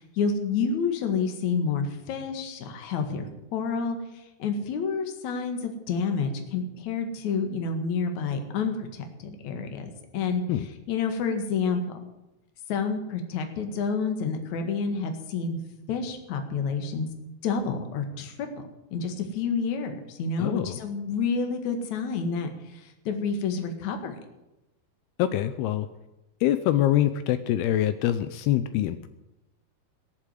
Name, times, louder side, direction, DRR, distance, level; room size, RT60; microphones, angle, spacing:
voice 1, 0.0-10.4 10.9-11.8 12.7-15.6 15.9-17.1 17.4-24.2, left 5 dB, 55° left, 6 dB, 2.7 m, -29 dB
voice 2, 20.4-20.8 25.2-25.9 26.4-29.1, left 12 dB, 85° left, 11 dB, 2.7 m, -24 dB
19.5 x 7.4 x 9.2 m, 0.96 s
omnidirectional pair, 4.6 m